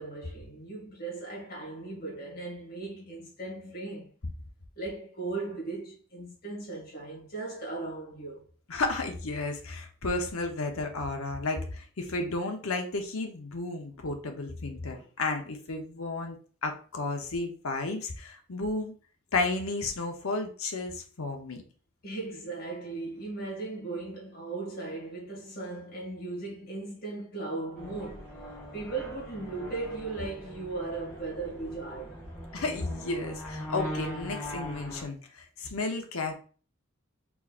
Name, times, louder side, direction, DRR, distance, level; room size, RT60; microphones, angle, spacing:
voice 1, 0.0-4.1 4.8-8.5 22.0-28.3 28.7-32.2, right 3 dB, 45° left, 2.2 m, -37 dB
voice 2, 8.7-18.9 19.3-21.6 32.5-36.3, left 3 dB, 85° left, 0.9 m, -33 dB
sound 1, 27.8-35.0, equal, 10° left, 2.2 m, -41 dB
4.7 x 4.2 x 2.5 m
head